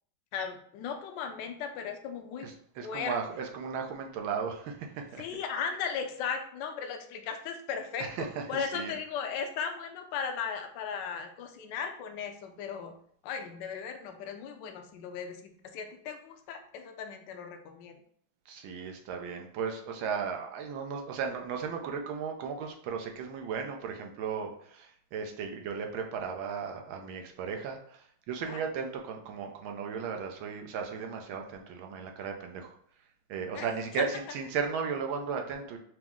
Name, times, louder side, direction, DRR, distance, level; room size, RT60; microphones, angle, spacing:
voice 1, 0.3-2.5 2.8-3.2 5.2-12.9 13.2-18.0 28.5-28.6 33.5-33.6 33.9-34.0, left 6 dB, 70° left, 5 dB, 1.2 m, -37 dB
voice 2, 2.4-5.2 8.0-8.9 18.5-32.7 33.3-35.8, right 6 dB, 90° right, 3 dB, 1.5 m, -36 dB
5.8 x 2.1 x 3.6 m, 0.64 s
omnidirectional pair, 2.1 m